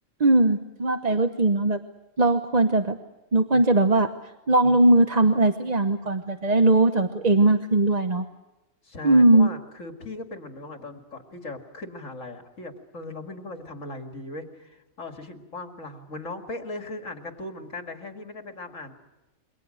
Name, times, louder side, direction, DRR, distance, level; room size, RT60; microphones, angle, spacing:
voice 1, 0.2-1.8 2.2-3.0 3.3-4.1 4.5-8.2 9.0-9.5, right 2 dB, 35° right, 7 dB, 1.0 m, -19 dB
voice 2, 8.8-19.0, left 2 dB, 75° left, 5 dB, 2.7 m, -38 dB
28.0 x 23.5 x 6.5 m, 1.0 s
omnidirectional pair, 1.3 m